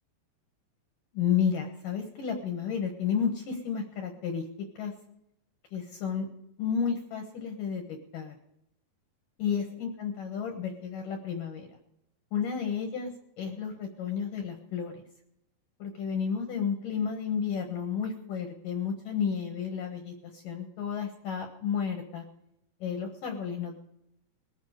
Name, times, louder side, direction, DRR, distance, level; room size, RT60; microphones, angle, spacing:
voice 1, 1.1-4.5 4.8-4.9 5.7-6.3 6.6-8.3 9.4-11.7 12.3-13.1 13.4-14.9 15.8-22.2 22.8-23.8, left 7 dB, 65° left, 3 dB, 2.5 m, -32 dB
21.0 x 8.4 x 4.8 m, 0.79 s
omnidirectional pair, 4.9 m